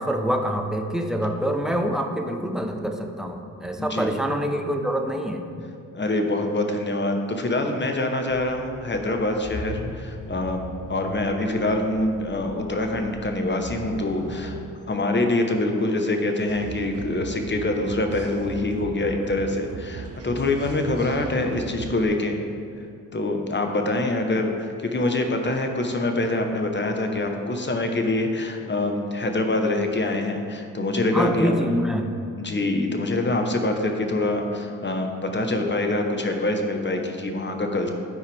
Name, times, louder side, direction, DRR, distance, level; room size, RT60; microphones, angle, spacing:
voice 1, 0.0-5.5 31.1-32.2, equal, ahead, 4 dB, 0.8 m, -25 dB
voice 2, 3.8-4.1 5.9-14.6 14.9-22.4 23.1-31.5 32.4-37.9, left 2 dB, 25° left, 4 dB, 1.2 m, -25 dB
sound 1, 8.3-14.6, equal, 50° left, 1.4 m, -39 dB
sound 2, 16.5-22.1, right 5 dB, 35° right, 0.8 m, -37 dB
12.5 x 4.7 x 3.5 m, 2.3 s
hypercardioid pair, 45°, 41 cm